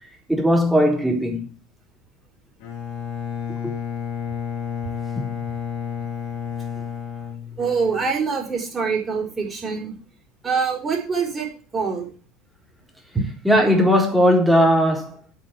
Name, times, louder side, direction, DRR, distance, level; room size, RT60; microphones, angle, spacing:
voice 1, 0.3-1.5 3.5-3.7 5.2-5.4 13.4-15.2, equal, 5° right, 4.0 m, -18 dB
Bowed string instrument, 2.6-8.1, left 8 dB, 55° left, 3.4 m, -31 dB
voice 2, 7.6-9.9 10.4-12.1 13.1-13.2, right 5 dB, 20° right, 4.8 m, -24 dB
8.5 x 7.3 x 8.3 m
figure-of-eight pair, 70°, 0 cm